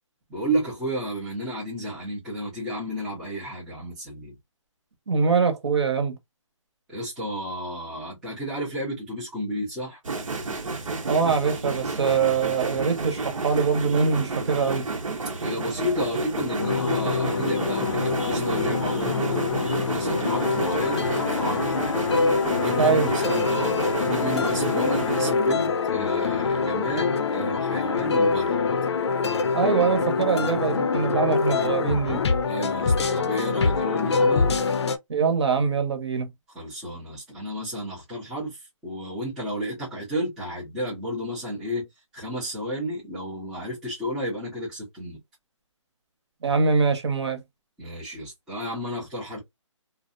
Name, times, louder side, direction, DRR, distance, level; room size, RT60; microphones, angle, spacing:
voice 1, 0.3-4.4 6.9-10.0 15.4-22.0 22.5-28.6 32.5-34.5 36.5-41.9 42.1-45.2 47.8-49.4, equal, ahead, 0.4 m, -32 dB
voice 2, 5.1-6.2 11.1-14.9 22.8-23.1 29.5-32.2 35.1-36.3 46.4-47.4, right 5 dB, 55° right, 0.8 m, -23 dB
sound 1, 10.0-25.3, right 3 dB, 85° right, 0.9 m, -30 dB
sound 2, 16.6-35.0, left 5 dB, 55° left, 0.5 m, -25 dB
2.5 x 2.1 x 2.4 m
hypercardioid pair, 160°, 17 cm